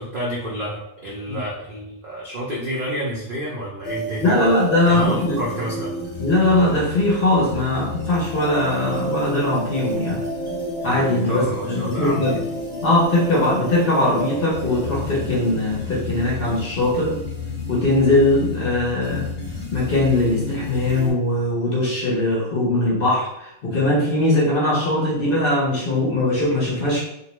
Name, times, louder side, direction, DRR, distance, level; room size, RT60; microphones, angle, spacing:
voice 1, 0.0-4.5 4.9-5.9 11.3-12.3, equal, 65° right, -5 dB, 0.5 m, -29 dB
sound 1, 3.8-21.1, left 1 dB, 10° left, 0.6 m, -30 dB
voice 2, 4.2-5.4 6.2-10.2 10.8-12.4 12.8-17.2 17.7-19.3 19.7-27.0, left 1 dB, 55° left, -5 dB, 0.6 m, -20 dB
2.6 x 2.0 x 2.9 m, 0.82 s
omnidirectional pair, 1.5 m